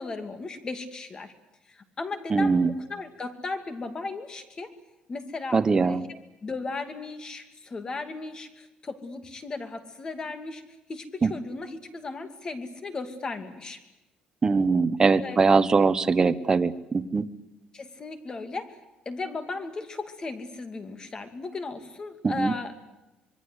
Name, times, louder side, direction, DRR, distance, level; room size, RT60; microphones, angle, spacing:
voice 1, 0.0-1.3 1.7-4.7 5.1-10.6 10.9-13.8 15.2-15.4 17.7-18.8 19.1-22.8, left 3 dB, 30° left, 8 dB, 2.5 m, -36 dB
voice 2, 2.3-2.7 5.5-6.0 11.2-11.3 14.4-17.2 22.2-22.5, right 4 dB, 25° right, 11 dB, 0.9 m, -22 dB
26.0 x 22.0 x 8.1 m, 1.0 s
cardioid pair, 140°, 3 cm